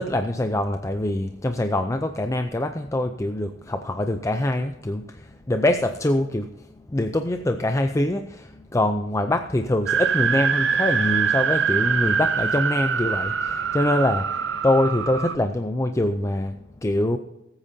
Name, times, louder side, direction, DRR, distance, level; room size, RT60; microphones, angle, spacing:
voice 1, 0.0-6.5 6.9-17.2, left 1 dB, 15° left, 7 dB, 0.5 m, -24 dB
sound 1, 9.9-15.4, right 6 dB, 70° right, 0.8 m, -24 dB
20.5 x 8.8 x 2.7 m, 0.92 s
head